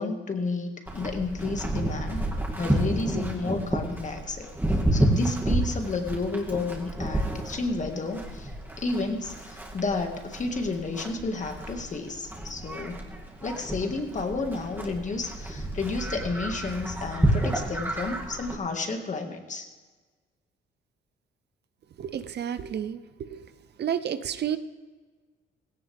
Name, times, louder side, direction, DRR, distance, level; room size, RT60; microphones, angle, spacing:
voice 1, 0.0-2.2 2.6-4.5 4.9-8.5 8.8-13.1 13.4-19.7, left 3 dB, 40° left, 4 dB, 2.0 m, -31 dB
Livestock farm animals working animals, 0.9-18.5, right 1 dB, 10° right, 2.5 m, -30 dB
voice 2, 22.0-23.5 23.8-24.6, right 9 dB, 55° right, 12 dB, 0.8 m, -31 dB
17.0 x 16.5 x 3.5 m, 1.4 s
cardioid pair, 90°, 20 cm